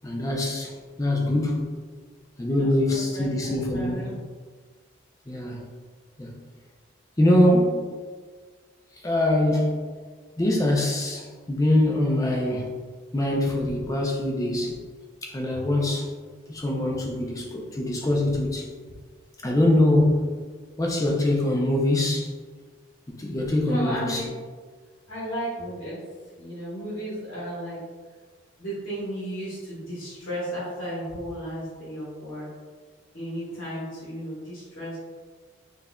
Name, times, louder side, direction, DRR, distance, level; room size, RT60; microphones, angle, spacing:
voice 1, 0.0-0.7 1.0-1.8 2.4-4.1 5.3-5.6 6.2-6.4 7.2-7.8 9.0-9.9 10.4-12.7 13.1-14.8 15.2-16.1 16.5-18.6 19.4-20.3 20.8-22.3 23.2-24.2, left 1 dB, 15° left, -1 dB, 0.4 m, -23 dB
voice 2, 2.6-4.2 15.5-15.7 23.6-24.3 25.1-26.0 26.4-27.8 28.6-32.5 33.1-35.0, equal, 50° left, -10 dB, 1.1 m, -34 dB
4.5 x 2.4 x 2.2 m, 1.5 s
head